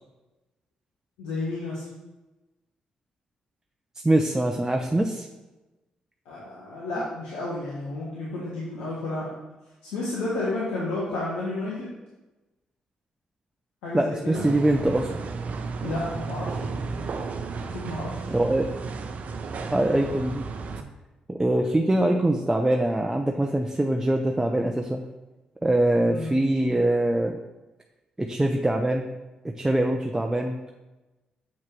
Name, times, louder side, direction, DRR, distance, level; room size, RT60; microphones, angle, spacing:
voice 1, 1.2-1.8 6.2-9.3 9.9-11.9 13.8-14.4 15.8-17.3 17.6-18.3 26.1-26.3, left 2 dB, 85° left, -6 dB, 1.3 m, -32 dB
voice 2, 4.0-5.3 13.9-15.1 18.3-18.7 19.7-20.4 21.3-25.0 25.6-27.4 28.2-29.1 29.6-30.6, right 1 dB, 15° right, 3 dB, 0.7 m, -23 dB
sound 1, 14.3-20.8, right 4 dB, 55° right, 0.7 m, -33 dB
7.2 x 4.6 x 4.7 m, 1.1 s
hypercardioid pair, 45°, 3 cm